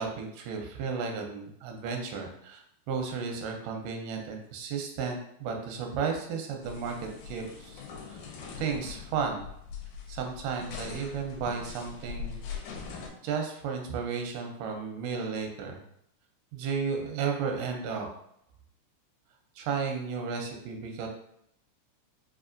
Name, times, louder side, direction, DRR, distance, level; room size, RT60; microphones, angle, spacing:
voice 1, 0.0-7.8 8.1-8.2 8.6-9.5 10.1-12.4 13.2-15.8 16.5-18.1 19.6-21.1, right 5 dB, 85° right, 3 dB, 2.2 m, -33 dB
sound 1, 6.6-13.1, left 6 dB, 80° left, 2.1 m, -42 dB
5.2 x 2.6 x 2.5 m, 0.71 s
omnidirectional pair, 3.6 m